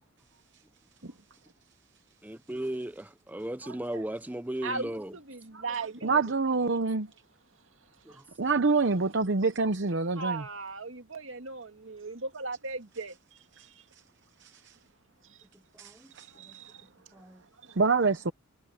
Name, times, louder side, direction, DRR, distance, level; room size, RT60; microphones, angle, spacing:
voice 1, 2.2-5.1 6.0-6.1 8.1-8.2 15.8-16.1 16.5-16.6 17.1-17.4, right 1 dB, 10° right, 0.6 m, -36 dB
voice 2, 3.6-4.1 4.6-6.2 8.1-8.2 10.2-13.2 13.6-13.8 15.3-15.4 16.2-17.8, right 3 dB, 80° right, 2.1 m, -39 dB
voice 3, 6.0-7.1 8.4-10.4 13.6-13.7 14.4-14.8 15.8-16.3 17.8-18.3, right 4 dB, 60° right, 0.9 m, -26 dB
head